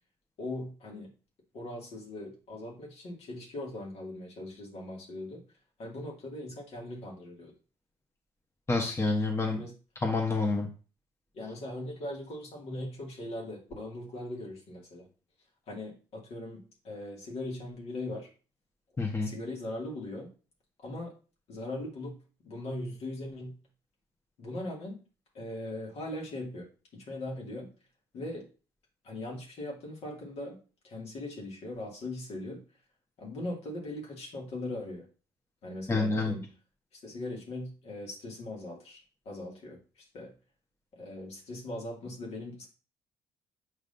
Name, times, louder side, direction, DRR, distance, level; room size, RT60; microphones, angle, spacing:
voice 1, 0.4-1.1 1.5-5.4 5.8-7.5 9.4-9.7 11.3-15.1 15.7-18.3 19.2-20.3 20.8-21.1 21.5-22.2 22.4-23.5 24.4-25.0 25.3-26.7 26.9-27.7 28.1-28.5 29.0-30.6 30.8-32.6 33.2-35.0 35.6-36.5 36.9-40.3 40.9-42.7, left 1 dB, 60° left, -2 dB, 2.4 m, -40 dB
voice 2, 8.7-9.6 10.0-10.7 19.0-19.3 35.9-36.3, left 3 dB, 25° left, 2 dB, 1.4 m, -28 dB
7.9 x 5.1 x 2.7 m, 0.36 s
hypercardioid pair, 50°, 11 cm